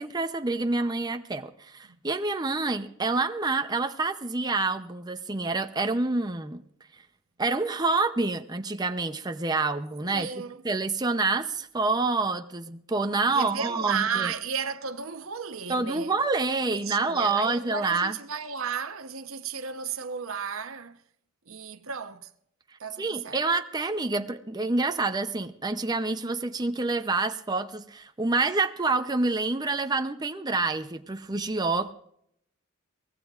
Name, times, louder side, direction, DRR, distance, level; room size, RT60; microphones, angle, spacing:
voice 1, 0.0-6.6 7.4-10.3 10.6-14.3 15.7-18.2 23.0-31.9, right 3 dB, 20° right, 0.7 m, -27 dB
voice 2, 10.0-10.6 13.3-16.1 16.7-21.0 21.5-22.3 22.8-23.4, right 6 dB, 85° right, 1.0 m, -34 dB
23.5 x 18.0 x 2.5 m
head